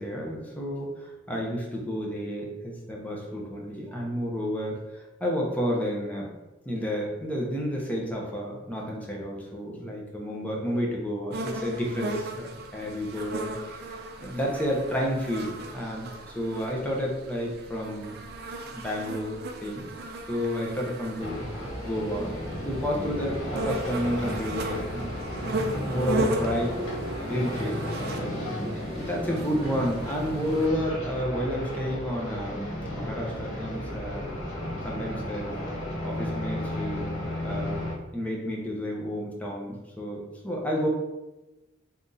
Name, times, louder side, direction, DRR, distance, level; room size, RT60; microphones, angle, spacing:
voice 1, 0.0-6.3 6.7-18.2 18.7-19.9 20.3-21.4 21.8-25.1 25.8-26.8 27.2-27.8 28.5-32.6 32.9-34.2 34.8-35.5 36.0-37.1 37.4-37.8 38.1-40.9, equal, 5° left, -2 dB, 0.6 m, -31 dB
sound 1, 11.3-30.7, right 1 dB, 50° right, 0.5 m, -37 dB
sound 2, 21.2-37.9, left 1 dB, 85° left, 1.5 m, -33 dB
4.1 x 2.7 x 3.7 m, 1.0 s
head